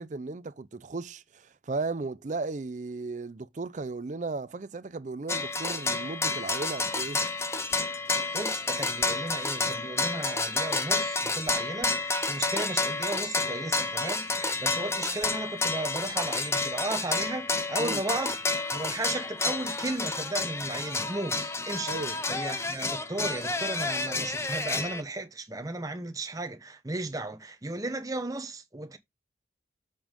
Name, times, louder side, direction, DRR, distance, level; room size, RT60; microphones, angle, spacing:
voice 1, 0.0-7.2 17.8-18.0 21.9-22.2, right 3 dB, 40° right, 0.5 m, -35 dB
sound 1, 5.3-25.0, left 3 dB, 15° left, 0.6 m, -30 dB
voice 2, 8.3-18.4 18.7-29.0, right 2 dB, 20° right, 0.8 m, -35 dB
7.6 x 5.3 x 3.6 m
head